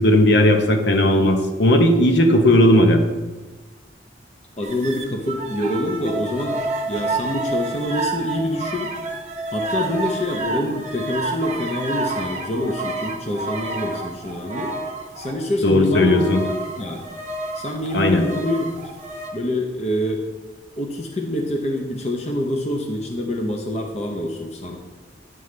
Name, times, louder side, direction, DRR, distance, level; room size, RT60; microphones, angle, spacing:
voice 1, 0.0-3.0 15.6-16.4 17.9-18.2, left 1 dB, 70° left, 4 dB, 0.8 m, -16 dB
voice 2, 4.6-6.6 6.9-8.9 9.5-14.7 15.2-17.0 17.5-18.7 19.3-20.2 20.8-24.8, left 1 dB, 35° left, 2 dB, 0.7 m, -26 dB
sound 1, 4.6-15.3 16.0-19.3, right 2 dB, 40° right, 0.8 m, -29 dB
9.1 x 5.5 x 3.3 m, 1.2 s
head